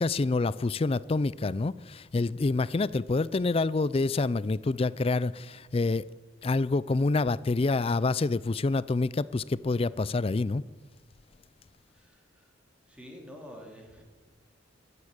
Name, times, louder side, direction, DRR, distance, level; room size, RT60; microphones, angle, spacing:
voice 1, 0.0-6.0 6.4-10.6, left 3 dB, 30° left, 0.4 m, -27 dB
voice 2, 11.9-12.5 12.8-14.0, equal, 5° right, 2.8 m, -48 dB
13.5 x 9.8 x 9.8 m
head